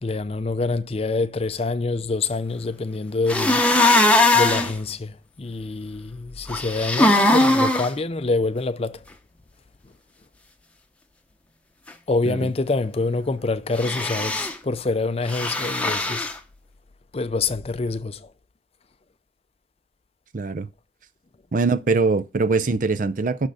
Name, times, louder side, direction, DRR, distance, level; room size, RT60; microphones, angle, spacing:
voice 1, 0.0-3.6 4.3-9.0 12.1-16.3 17.1-18.3, left 3 dB, 35° left, 0.5 m, -26 dB
sound 1, 3.3-4.7 6.5-7.9 13.8-14.5 15.3-16.3, left 2 dB, 10° left, 0.9 m, -19 dB
voice 2, 20.3-20.7 21.5-23.5, right 4 dB, 45° right, 0.5 m, -22 dB
6.5 x 6.4 x 4.9 m
head